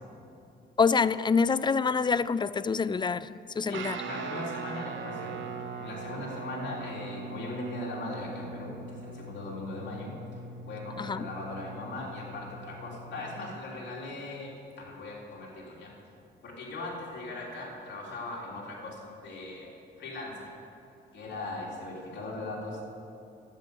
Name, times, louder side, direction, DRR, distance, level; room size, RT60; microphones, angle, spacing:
voice 1, 0.8-4.0 11.0-11.3, left 5 dB, 25° left, 17 dB, 0.3 m, -26 dB
voice 2, 3.6-10.1 10.7-15.9 16.4-19.7 20.0-20.5 21.1-22.8, left 2 dB, 60° left, -4 dB, 3.7 m, -39 dB
Guitar, 3.7-13.6, right 4 dB, 75° right, 0.9 m, -41 dB
10.5 x 8.3 x 8.8 m, 2.7 s
cardioid pair, 90°, 20 cm